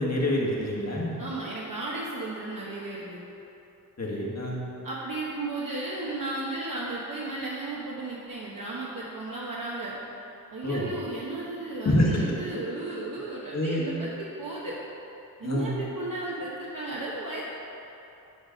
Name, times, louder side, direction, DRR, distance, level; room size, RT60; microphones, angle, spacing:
voice 1, 0.0-1.1 4.0-4.6 10.6-10.9 11.8-12.2 13.5-13.8 15.4-15.8, left 1 dB, 45° left, -4 dB, 1.6 m, -26 dB
voice 2, 1.2-3.2 4.8-9.9 10.5-14.8 15.4-17.4, right 2 dB, 60° right, -6 dB, 1.1 m, -34 dB
10.0 x 4.1 x 5.1 m, 2.9 s
wide cardioid pair, 55°, 37 cm